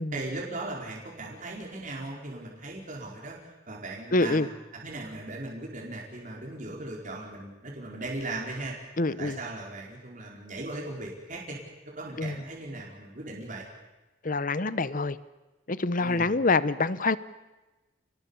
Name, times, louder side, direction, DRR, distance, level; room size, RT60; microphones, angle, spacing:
voice 1, 0.1-4.5 4.7-8.8 9.2-11.6 11.8-13.6 16.0-16.3, right 2 dB, 45° right, -1 dB, 4.8 m, -38 dB
voice 2, 4.1-4.5 9.0-9.4 12.2-12.4 14.2-15.2 15.7-17.2, left 3 dB, 50° left, 16 dB, 0.9 m, -26 dB
30.0 x 20.0 x 7.2 m, 1.1 s
head